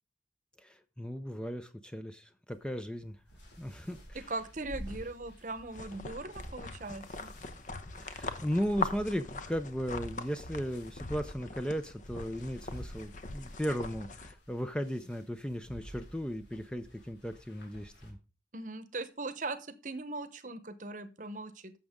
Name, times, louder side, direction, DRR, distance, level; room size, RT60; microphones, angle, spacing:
voice 1, 0.6-3.2 3.6-4.2 8.0-18.2, equal, 5° left, 9 dB, 0.5 m, -36 dB
sound 1, 2.5-18.1, equal, 80° left, 4.1 m, -53 dB
voice 2, 4.1-7.3 18.5-19.6 19.8-21.7, right 2 dB, 45° right, 13 dB, 0.9 m, -39 dB
sound 2, 5.7-14.3, left 2 dB, 45° left, 0.9 m, -41 dB
11.5 x 7.1 x 3.7 m, 0.33 s
head